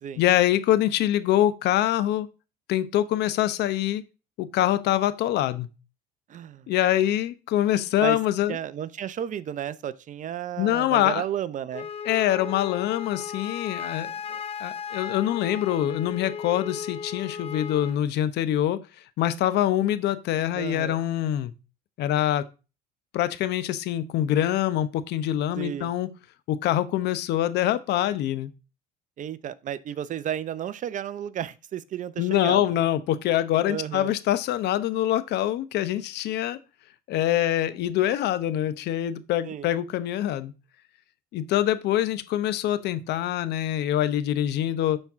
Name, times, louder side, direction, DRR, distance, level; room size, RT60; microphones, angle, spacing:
voice 1, 0.2-2.3 2.7-4.0 4.4-5.7 6.7-8.6 10.6-11.2 12.1-14.1 14.6-18.8 19.2-21.5 22.0-22.5 23.1-26.1 26.5-28.5 32.2-36.6 37.1-40.5 41.3-45.0, left 12 dB, 60° left, 0.9 m, -24 dB
voice 2, 6.3-6.7 8.0-8.2 8.5-11.9 20.5-21.0 25.5-25.9 29.2-32.6 33.7-34.1 39.4-39.7, right 10 dB, 40° right, 0.6 m, -33 dB
Wind instrument woodwind instrument, 11.7-18.0, left 7 dB, 30° left, 0.5 m, -36 dB
11.5 x 4.5 x 3.6 m
supercardioid pair, 95°, 19 cm